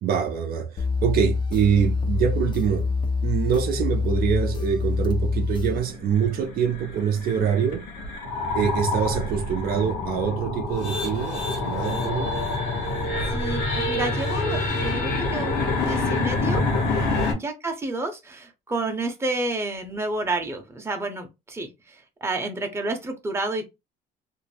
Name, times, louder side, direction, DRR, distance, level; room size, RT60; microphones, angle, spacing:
voice 1, 0.0-2.9 3.2-7.9 8.5-12.3 17.0-17.3, right 8 dB, 65° right, 0.5 m, -25 dB
sound 1, 0.8-5.8, left 4 dB, 30° left, 0.5 m, -26 dB
sound 2, 5.8-17.3, left 2 dB, 80° left, 1.0 m, -27 dB
voice 2, 13.3-16.6 17.3-23.7, right 2 dB, 15° right, 0.7 m, -30 dB
2.5 x 2.0 x 3.2 m
cardioid pair, 110°, 17 cm